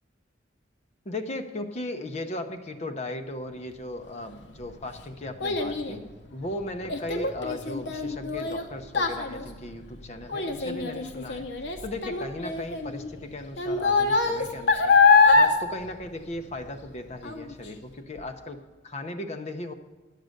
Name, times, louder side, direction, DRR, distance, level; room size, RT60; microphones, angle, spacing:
voice 1, 1.0-6.0 6.3-11.5 11.8-15.0 15.3-19.7, left 1 dB, 35° left, 6 dB, 0.7 m, -37 dB
Child speech kid speaking, 4.2-16.9 17.2-17.7 18.2-18.3, left 4 dB, 65° left, 0.9 m, -24 dB
11.0 x 6.7 x 6.5 m, 1.2 s
head